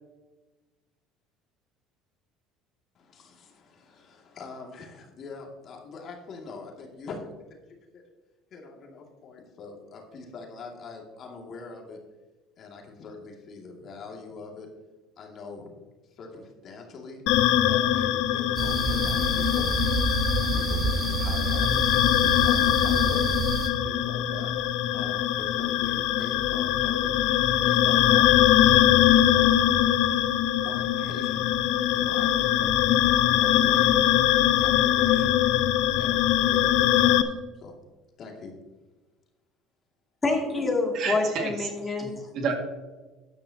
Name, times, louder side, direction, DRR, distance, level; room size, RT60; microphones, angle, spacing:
voice 1, 3.1-7.2 7.5-7.6 7.9-8.0 8.5-12.0 12.6-14.7 15.2-15.6 16.2-17.2 17.6-19.7 20.3-24.5 24.9-27.1 27.6-29.6 30.6-31.5 31.9-32.7 33.2-34.1 34.6-35.4 36.0-37.2 37.6-37.7 38.2-38.6, left 4 dB, 50° left, 0 dB, 2.4 m, -43 dB
sound 1, 17.3-37.2, left 12 dB, 70° left, 0.6 m, -22 dB
sound 2, 18.6-23.7, right 2 dB, 35° right, 1.5 m, -28 dB
voice 2, 40.2-42.3, left 3 dB, 20° left, 0 dB, 2.6 m, -27 dB
voice 3, 40.9-41.5 42.0-42.5, right 5 dB, 60° right, 3 dB, 2.1 m, -30 dB
12.5 x 10.5 x 2.9 m, 1.2 s
supercardioid pair, 105°, 0 cm